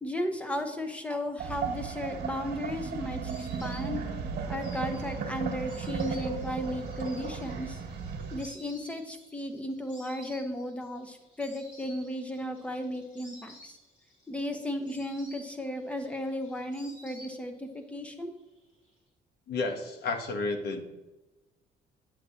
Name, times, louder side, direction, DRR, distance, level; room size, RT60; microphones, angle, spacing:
voice 1, 0.0-4.0 4.5-7.8 8.3-13.8 14.3-18.3, left 1 dB, 5° left, 6 dB, 0.7 m, -35 dB
sound 1, 1.4-8.4, right 5 dB, 65° right, 1.4 m, -35 dB
Insect, 2.2-17.8 18.1-18.9, left 1 dB, 45° left, 2.7 m, -54 dB
voice 2, 19.5-21.0, left 3 dB, 70° left, 6 dB, 1.0 m, -32 dB
8.1 x 8.1 x 2.8 m, 1.1 s
cardioid pair, 150°, 18 cm